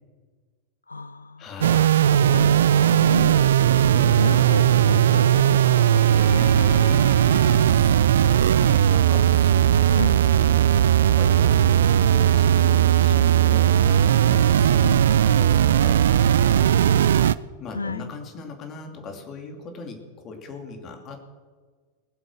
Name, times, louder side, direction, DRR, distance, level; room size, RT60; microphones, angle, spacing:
voice 1, 0.9-1.5 2.3-3.8 4.2-6.8 9.8-10.2 14.8-15.0 17.7-18.1, left 4 dB, 80° left, 16 dB, 0.3 m, -32 dB
voice 2, 1.4-2.0 3.9-4.2 7.3-10.7 11.2-11.6 12.0-17.1 17.6-21.2, left 4 dB, 30° left, 4 dB, 2.8 m, -40 dB
sound 1, 1.6-17.3, right 10 dB, 60° right, 0.4 m, -18 dB
sound 2, 5.4-8.8, left 5 dB, 55° left, 4.4 m, -40 dB
20.5 x 8.0 x 6.5 m, 1.5 s
figure-of-eight pair, 90°, 0 cm